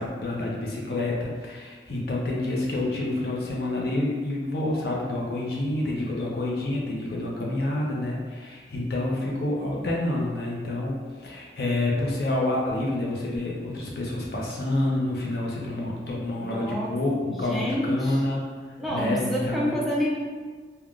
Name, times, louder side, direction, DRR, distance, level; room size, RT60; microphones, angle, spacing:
voice 1, 0.0-19.7, left 1 dB, 60° left, -3 dB, 0.6 m, -28 dB
voice 2, 16.4-16.9 17.3-18.2 18.8-20.2, equal, ahead, -5 dB, 0.4 m, -28 dB
3.5 x 2.2 x 2.4 m, 1.5 s
head